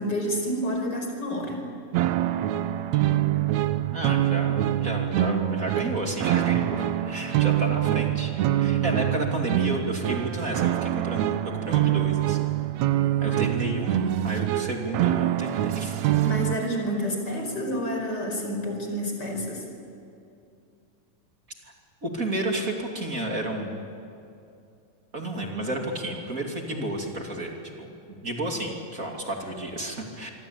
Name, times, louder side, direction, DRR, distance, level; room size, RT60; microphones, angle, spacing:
voice 1, 0.0-1.6 8.7-8.8 13.2-13.5 16.2-19.6, equal, 25° left, 3 dB, 5.3 m, -29 dB
sound 1, 1.9-16.6, right 13 dB, 80° right, 1.6 m, -25 dB
voice 2, 3.9-8.3 8.6-12.5 13.2-16.0 22.0-23.8 25.1-30.3, right 1 dB, 25° right, 1 dB, 2.6 m, -31 dB
26.0 x 24.5 x 8.8 m, 2.6 s
omnidirectional pair, 4.2 m